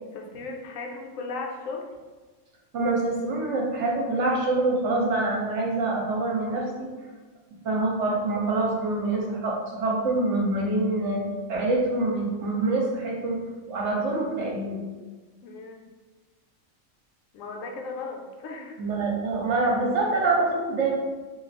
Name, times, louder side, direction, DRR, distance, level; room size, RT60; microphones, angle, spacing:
voice 1, 0.0-1.9 15.4-15.9 17.3-18.8, left 3 dB, 90° left, 1 dB, 1.0 m, -36 dB
voice 2, 2.7-6.9 7.6-11.2 11.5-13.4 13.7-14.8 18.8-21.0, right 2 dB, 65° right, -2 dB, 1.1 m, -25 dB
3.1 x 2.7 x 4.1 m, 1.3 s
omnidirectional pair, 1.3 m